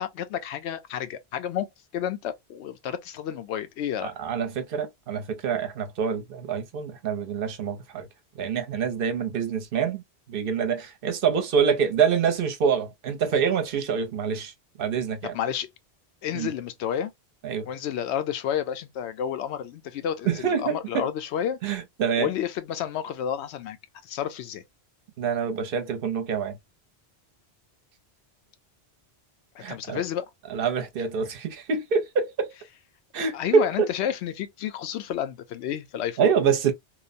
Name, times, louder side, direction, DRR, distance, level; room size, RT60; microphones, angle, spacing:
voice 1, 0.0-1.7 1.9-4.1 15.3-15.7 16.2-17.1 17.7-21.6 22.2-23.8 24.0-24.6 29.5-30.2 33.3-36.3, left 9 dB, 80° left, 0.8 m, -30 dB
voice 2, 4.0-8.1 8.3-10.0 10.3-14.5 14.8-15.3 16.3-16.5 17.4-17.7 20.3-21.1 21.6-22.3 25.2-26.6 29.6-30.0 30.5-32.5 33.1-33.9 36.2-36.7, right 6 dB, 60° right, 0.8 m, -26 dB
2.8 x 2.0 x 2.4 m
omnidirectional pair, 1.1 m